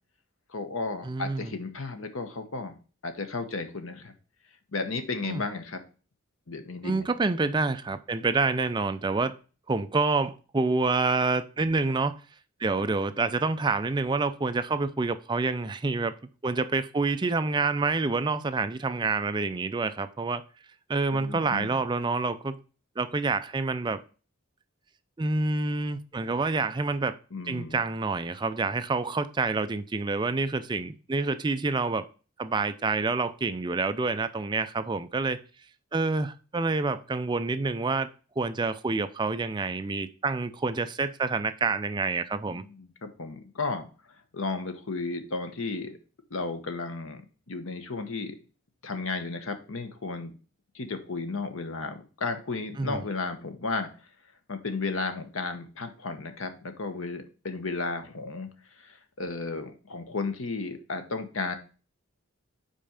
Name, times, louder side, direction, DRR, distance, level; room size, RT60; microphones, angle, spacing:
voice 1, 0.5-2.8 3.0-4.1 4.7-5.8 6.5-7.1 21.1-21.8 27.3-27.8 42.5-43.9 44.3-46.0 46.3-47.2 47.5-48.4 48.8-50.3 50.7-53.9 54.5-58.5 58.8-61.6, left 3 dB, 70° left, 1.0 m, -34 dB
voice 2, 1.0-1.5 5.2-5.4 6.8-9.3 9.7-12.2 12.6-16.1 16.4-20.4 20.9-22.6 23.0-24.0 25.2-27.2 27.5-32.1 32.4-35.4 35.9-38.1 38.4-42.6 52.8-53.0, right 3 dB, 20° right, 0.4 m, -27 dB
5.5 x 4.3 x 5.0 m
head